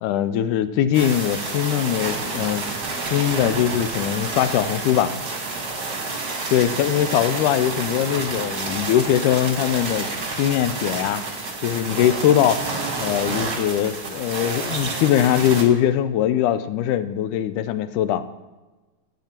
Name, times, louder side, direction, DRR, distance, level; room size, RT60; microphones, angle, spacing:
voice 1, 0.0-2.7 3.1-5.1 6.5-10.1 10.4-11.2 11.6-12.6 13.0-18.2, left 10 dB, 80° left, 12 dB, 1.9 m, -21 dB
sound 1, 0.9-15.6, right 3 dB, 40° right, 1.5 m, -29 dB
10.5 x 8.2 x 4.3 m, 1.2 s
omnidirectional pair, 3.9 m